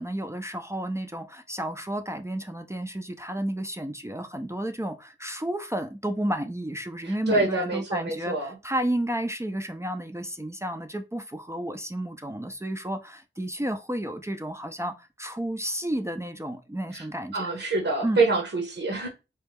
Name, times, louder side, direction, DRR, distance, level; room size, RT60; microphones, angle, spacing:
voice 1, 0.0-17.5 18.0-18.2, right 1 dB, 15° right, 0.4 m, -32 dB
voice 2, 7.0-8.6 16.9-17.0 17.3-19.1, right 3 dB, 75° right, 1.0 m, -26 dB
4.1 x 2.3 x 3.4 m
wide cardioid pair, 75°, 21 cm